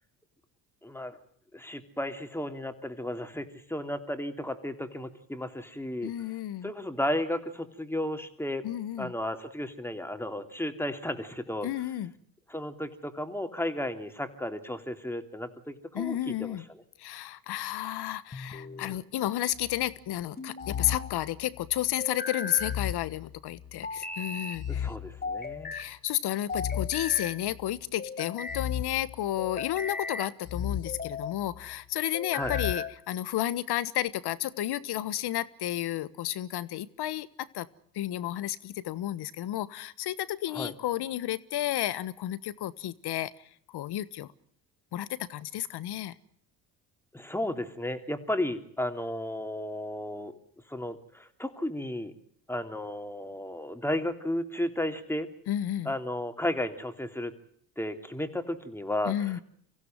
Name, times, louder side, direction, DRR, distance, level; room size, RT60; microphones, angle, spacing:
voice 1, 0.8-1.2 1.5-6.1 6.6-8.7 9.0-11.7 12.5-16.6 24.7-25.7 32.3-32.5 40.5-40.7 47.1-50.3 50.7-52.1 52.5-55.3 55.8-57.3 57.8-59.4, left 1 dB, 5° left, 3.1 m, -33 dB
voice 2, 6.0-6.7 8.6-9.1 11.6-12.1 15.9-16.6 17.0-24.9 25.7-37.3 37.5-37.7 37.9-43.3 43.7-44.3 44.9-46.1 55.5-55.9 59.0-59.4, left 13 dB, 65° left, 1.4 m, -32 dB
sound 1, 18.3-19.0 20.4-21.1 22.0-22.8 23.8-24.6 25.2-25.9 26.5-27.4 28.0-28.6 29.4-30.3 30.9-31.4 32.1-33.0, left 4 dB, 20° left, 2.3 m, -37 dB
sound 2, 19.5-19.9 20.6-21.9 22.6-23.9 24.5-25.8 26.5-27.8 28.5-29.8 30.5-31.7 32.4-32.7, left 9 dB, 45° left, 1.1 m, -36 dB
25.0 x 15.5 x 9.2 m
supercardioid pair, 70°, 43 cm